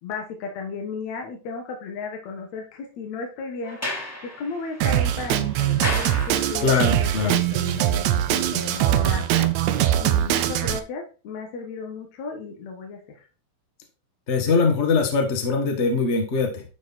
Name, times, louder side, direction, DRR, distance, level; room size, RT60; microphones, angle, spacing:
voice 1, 0.0-3.8 4.2-9.5 10.0-13.2, left 4 dB, 65° left, 2 dB, 2.6 m, -34 dB
Sliding door, 3.6-6.9, left 1 dB, 5° left, 2.2 m, -34 dB
Drum kit, 4.8-10.8, right 12 dB, 75° right, 1.7 m, -22 dB
voice 2, 6.6-7.4 14.3-16.6, left 4 dB, 45° left, 3 dB, 0.9 m, -22 dB
11.0 x 4.8 x 4.1 m, 0.35 s
omnidirectional pair, 3.5 m